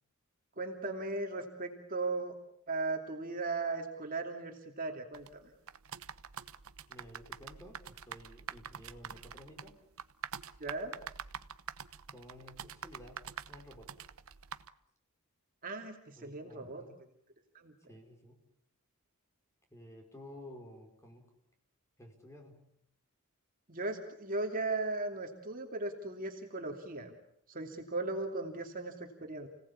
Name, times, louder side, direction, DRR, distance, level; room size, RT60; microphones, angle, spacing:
voice 1, 0.6-2.4 2.7-5.5 10.6-11.0 15.6-16.8 17.5-17.7 23.7-27.1 27.5-29.5, right 3 dB, 40° right, 3 dB, 2.7 m, -37 dB
sound 1, 5.1-14.7, right 7 dB, 65° right, 1.0 m, -46 dB
voice 2, 6.9-9.8 12.1-14.1 16.2-17.0 17.9-18.5 19.7-21.4 22.0-22.7, left 1 dB, 15° left, 3 dB, 5.2 m, -53 dB
29.5 x 18.5 x 8.6 m, 0.74 s
head